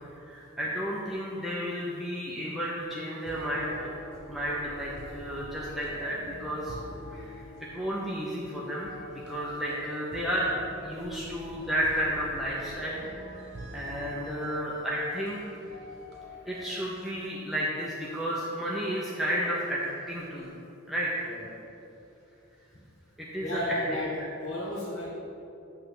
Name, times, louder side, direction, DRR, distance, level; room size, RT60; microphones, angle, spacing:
voice 1, 0.1-3.9 4.3-6.8 7.1-7.4 7.7-10.5 10.8-13.0 13.3-15.4 16.5-20.5 20.9-21.1 23.2-24.0, equal, ahead, -7 dB, 0.7 m, -32 dB
sound 1, 3.2-16.8, equal, 50° right, 1.1 m, -45 dB
voice 2, 23.4-25.1, left 1 dB, 35° left, -11 dB, 1.2 m, -33 dB
8.3 x 3.3 x 6.6 m, 2.9 s
head